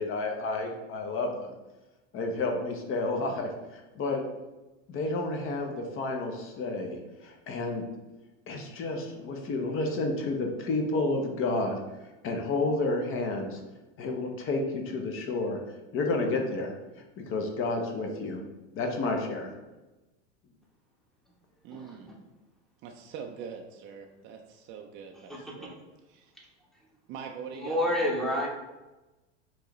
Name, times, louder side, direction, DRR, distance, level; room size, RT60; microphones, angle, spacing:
voice 1, 0.0-1.5 2.1-4.2 4.9-7.8 8.5-11.8 12.2-13.6 14.0-15.6 15.9-16.7 17.2-18.4 18.7-19.5, left 2 dB, 35° left, 3 dB, 0.8 m, -30 dB
voice 2, 21.6-22.1 22.8-25.8 26.1-26.3 27.1-28.0, right 6 dB, 35° right, 3 dB, 0.4 m, -43 dB
voice 3, 27.5-28.5, left 1 dB, ahead, -3 dB, 0.9 m, -27 dB
4.6 x 3.0 x 3.0 m, 1.1 s
hypercardioid pair, 110°, 38 cm